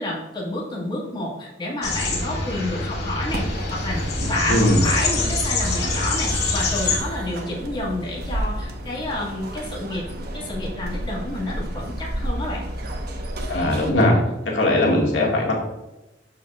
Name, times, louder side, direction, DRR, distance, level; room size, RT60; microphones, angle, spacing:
voice 1, 0.0-4.0 4.3-10.0 10.3-12.6, left 1 dB, 25° left, -5 dB, 2.1 m, -29 dB
sound 1, 1.8-7.0, left 3 dB, 60° left, 2.3 m, -25 dB
sound 2, 3.3-13.9, right 1 dB, 60° right, 1.2 m, -31 dB
voice 2, 4.5-4.9 13.5-14.2 14.5-15.6, left 1 dB, 90° left, -2 dB, 2.0 m, -19 dB
13.0 x 4.7 x 2.4 m, 0.99 s
head